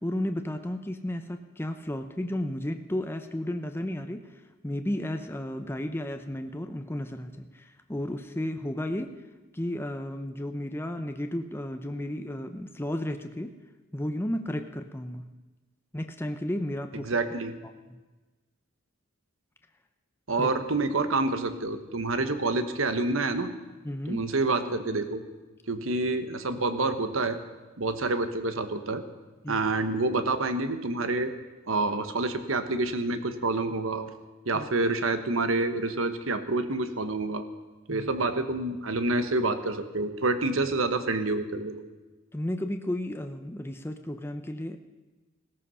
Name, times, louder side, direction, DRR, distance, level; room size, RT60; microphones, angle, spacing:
voice 1, 0.0-9.2 9.5-13.6 13.9-15.3 15.9-17.1 17.9-18.0 20.4-20.5 23.8-24.3 29.4-29.7 34.5-34.7 37.9-38.1 42.3-44.8, left 1 dB, 10° left, 6 dB, 0.7 m, -33 dB
voice 2, 17.0-17.6 20.3-23.5 24.1-25.2 25.7-27.4 27.8-29.0 29.5-31.3 31.7-34.1 34.4-37.4 37.9-41.8, right 2 dB, 75° right, 9 dB, 1.2 m, -28 dB
17.5 x 13.5 x 5.6 m, 1.2 s
head